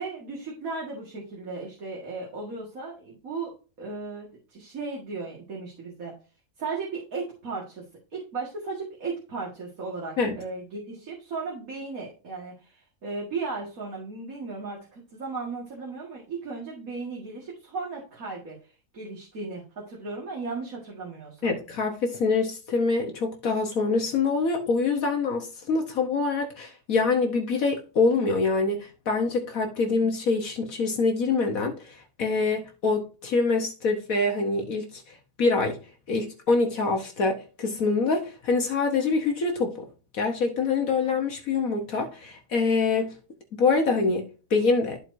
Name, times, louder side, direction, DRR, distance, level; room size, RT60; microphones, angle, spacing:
voice 1, 0.0-3.5 3.8-6.1 6.6-7.9 8.1-21.5 29.8-30.0, right 4 dB, 65° right, 2.3 m, -36 dB
voice 2, 21.4-35.8 36.1-39.9 40.1-43.1 43.5-45.0, left 4 dB, 65° left, 1.5 m, -25 dB
13.5 x 4.5 x 2.7 m
omnidirectional pair, 1.6 m